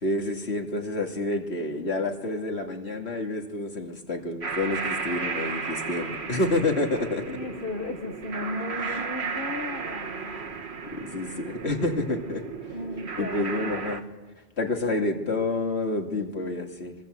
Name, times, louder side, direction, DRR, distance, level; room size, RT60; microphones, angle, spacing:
voice 1, 0.0-7.4 8.8-9.0 10.4-10.6 10.9-12.4 13.2-14.1 14.6-17.0, left 2 dB, 90° left, 3 dB, 2.8 m, -29 dB
sound 1, 4.4-14.0, right 5 dB, 80° right, 1.8 m, -34 dB
voice 2, 7.3-10.4 12.7-13.4, left 2 dB, 55° left, 5 dB, 1.7 m, -35 dB
24.5 x 23.0 x 8.1 m, 1.2 s
omnidirectional pair, 1.1 m